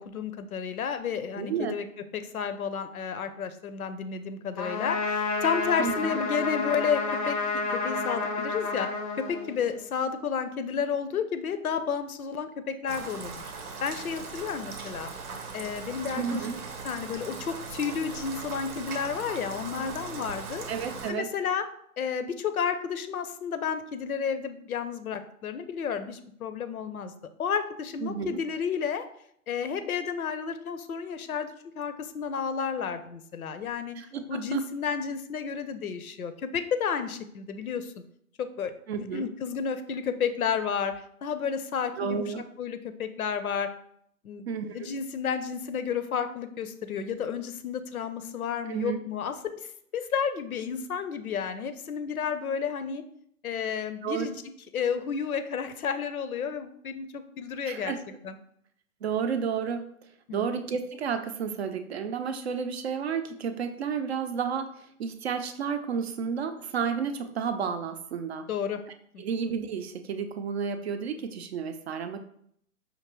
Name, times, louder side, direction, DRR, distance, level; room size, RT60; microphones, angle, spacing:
voice 1, 0.0-1.9 2.1-7.4 7.7-8.9 9.2-13.4 13.8-15.1 15.5-16.4 16.8-20.7 21.1-21.6 22.0-27.1 27.4-29.0 29.5-31.5 31.8-34.0 34.3-37.9 38.4-38.7 39.1-42.3 42.6-43.7 44.2-44.5 44.7-49.7 49.9-53.0 53.4-54.4 54.7-57.9 58.2-58.4 60.3-60.6 68.5-68.8 69.1-69.2, left 6 dB, 80° left, 10 dB, 0.6 m, -31 dB
voice 2, 1.3-1.8 5.8-6.1 16.1-16.5 20.7-21.3 28.0-28.4 33.9-34.6 38.9-39.3 42.0-42.4 44.5-45.0 48.7-49.0 54.0-54.3 57.7-58.0 59.0-68.5 69.2-72.2, right 6 dB, 50° right, 8 dB, 0.5 m, -31 dB
Trumpet, 4.6-9.8, left 3 dB, 25° left, 0.5 m, -30 dB
Rain, 12.9-21.1, right 4 dB, 85° right, 0.8 m, -39 dB
5.0 x 2.6 x 3.0 m, 0.68 s
hypercardioid pair, 130°, 43 cm